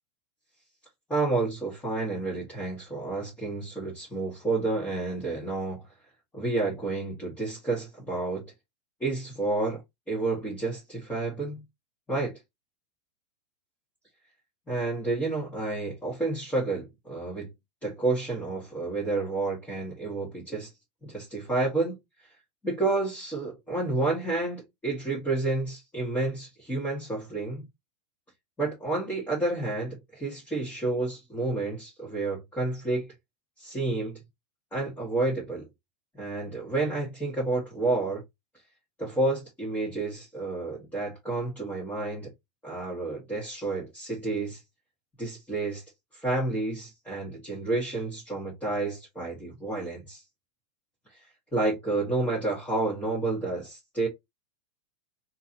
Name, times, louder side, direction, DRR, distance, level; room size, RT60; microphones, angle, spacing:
voice 1, 1.1-5.8 6.3-8.4 9.0-9.8 10.1-11.6 12.1-12.3 14.7-17.5 17.8-20.7 21.0-22.0 22.6-27.6 28.6-33.1 33.6-34.2 34.7-35.6 36.2-38.2 39.0-42.3 42.6-44.6 45.2-45.8 46.2-50.2 51.5-54.1, right 2 dB, 10° left, 1.5 m, -30 dB
3.8 x 2.8 x 2.7 m
supercardioid pair, 140°, 17 cm